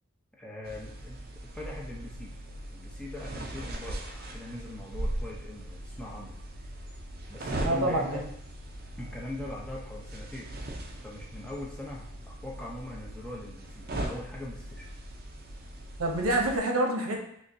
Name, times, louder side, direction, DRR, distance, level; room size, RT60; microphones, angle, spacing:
voice 1, 0.3-1.3 1.5-2.3 2.7-6.4 7.3-8.3 9.0-10.6 11.0-14.9, left 1 dB, 5° left, -3 dB, 0.6 m, -41 dB
sound 1, 0.6-16.6, right 1 dB, 45° right, 0.5 m, -39 dB
voice 2, 7.6-8.3 16.0-17.2, right 1 dB, 85° right, 2 dB, 0.7 m, -27 dB
6.3 x 2.1 x 2.6 m, 0.73 s
head